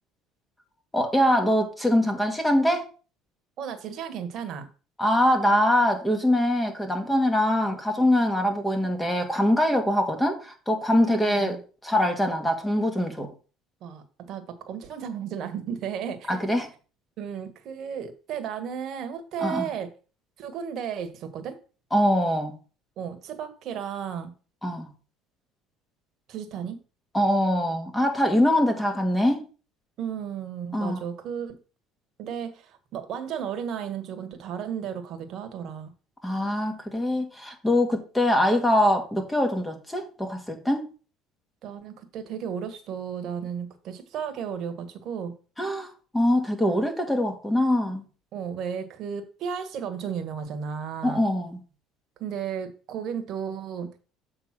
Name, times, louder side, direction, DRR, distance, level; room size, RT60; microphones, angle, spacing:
voice 1, 0.9-2.9 5.0-11.6 11.8-13.3 16.3-16.7 19.4-19.7 21.9-22.6 24.6-24.9 27.1-29.4 30.7-31.0 36.2-40.9 45.6-48.0 51.0-51.6, left 1 dB, 10° left, 5 dB, 1.9 m, -23 dB
voice 2, 3.6-4.7 10.9-11.6 13.8-16.4 17.2-19.9 20.4-21.6 23.0-24.3 26.3-26.8 30.0-31.6 32.2-35.9 41.6-45.3 48.3-51.2 52.2-53.9, right 7 dB, 55° right, 8 dB, 1.6 m, -34 dB
7.4 x 3.7 x 6.1 m, 0.36 s
supercardioid pair, 90°, 0 cm